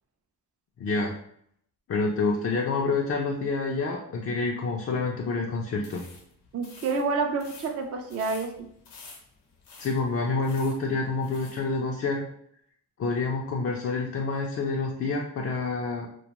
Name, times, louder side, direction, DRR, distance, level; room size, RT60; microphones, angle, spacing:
voice 1, 0.8-1.2 1.9-6.0 9.8-12.2 13.0-16.1, left 3 dB, 40° left, 0 dB, 0.4 m, -28 dB
sound 1, 5.7-11.7, left 4 dB, 70° left, 0.8 m, -50 dB
voice 2, 6.5-8.7, right 4 dB, 40° right, 4 dB, 0.4 m, -28 dB
2.2 x 2.1 x 2.9 m, 0.68 s
cardioid pair, 75°, 40 cm